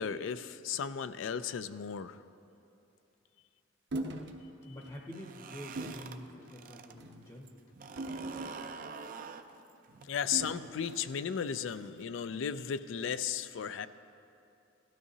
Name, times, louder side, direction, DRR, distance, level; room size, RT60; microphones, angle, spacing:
voice 1, 0.0-2.2 10.0-13.9, left 7 dB, 75° left, 13 dB, 0.4 m, -35 dB
sound 1, 3.9-4.3 4.8-5.0 5.8-6.1 6.9-7.2 8.0-8.9 10.3-10.8, right 2 dB, 60° right, 0.9 m, -40 dB
voice 2, 4.6-7.6, left 1 dB, 30° left, 0 dB, 0.8 m, -47 dB
sound 2, 5.0-6.9 7.3-12.0, right 5 dB, 45° right, 0.4 m, -47 dB
17.0 x 12.5 x 2.8 m, 2.7 s
head